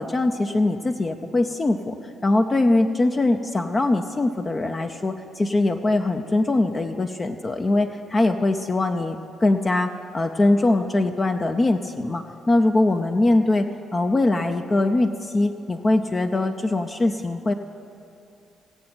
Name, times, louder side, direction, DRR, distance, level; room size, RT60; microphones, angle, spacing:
voice 1, 0.0-17.5, left 2 dB, 30° left, 5 dB, 0.6 m, -22 dB
17.0 x 7.6 x 5.9 m, 2.7 s
figure-of-eight pair, 45°, 0 cm